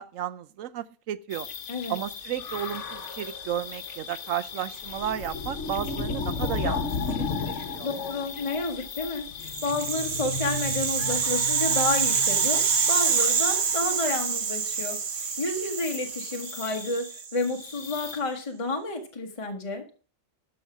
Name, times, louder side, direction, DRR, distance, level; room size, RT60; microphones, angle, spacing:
voice 1, 0.0-1.5 1.9-6.9 7.2-7.9, right 10 dB, 75° right, 1.0 m, -33 dB
sound 1, 1.3-18.2, left 5 dB, 60° left, 1.3 m, -35 dB
voice 2, 7.8-19.8, left 3 dB, 25° left, 1.3 m, -30 dB
Rattle (instrument), 9.5-17.7, right 6 dB, 90° right, 1.6 m, -27 dB
13.0 x 5.6 x 6.0 m
omnidirectional pair, 1.4 m